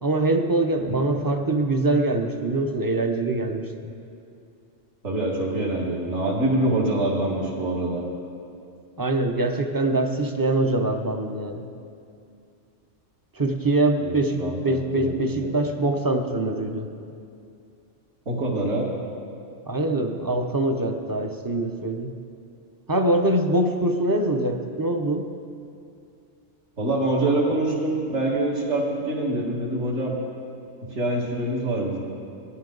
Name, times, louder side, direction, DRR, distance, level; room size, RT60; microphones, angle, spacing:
voice 1, 0.0-3.9 9.0-11.7 13.4-16.9 19.6-22.1 22.9-25.3, right 2 dB, 20° right, 5 dB, 0.6 m, -24 dB
voice 2, 5.0-8.0 14.0-15.5 18.3-18.9 26.8-30.2 30.8-32.0, right 1 dB, 60° right, -4 dB, 2.2 m, -25 dB
18.5 x 12.5 x 3.9 m, 2.5 s
omnidirectional pair, 1.3 m